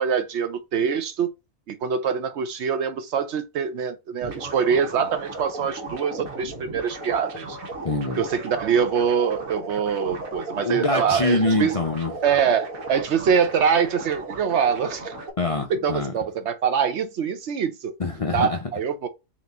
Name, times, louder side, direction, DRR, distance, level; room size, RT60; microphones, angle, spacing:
voice 1, 0.0-1.3 1.7-7.6 8.1-11.8 12.2-15.1 15.7-18.0 18.3-19.1, right 7 dB, 65° right, 0.8 m, -24 dB
sound 1, 4.2-15.3, right 2 dB, 85° right, 1.4 m, -36 dB
voice 2, 7.8-8.2 10.6-12.1 15.4-16.1 18.0-18.6, left 3 dB, 55° left, 0.3 m, -24 dB
4.0 x 2.9 x 3.5 m
omnidirectional pair, 1.4 m